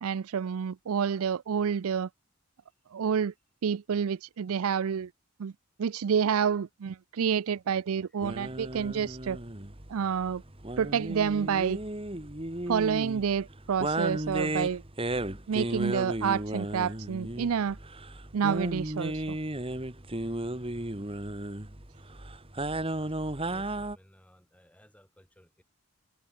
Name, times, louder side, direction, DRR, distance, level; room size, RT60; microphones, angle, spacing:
voice 1, 0.0-2.1 2.9-3.3 3.6-5.1 5.4-5.5 5.8-9.4 9.9-10.4 10.8-11.8 12.7-14.8 15.5-17.8 18.3-19.4, right 7 dB, 80° right, 0.4 m, -28 dB
sound 1, 8.2-24.0, right 1 dB, 25° right, 2.2 m, -34 dB
voice 2, 23.3-25.6, equal, 5° left, 7.8 m, -58 dB
head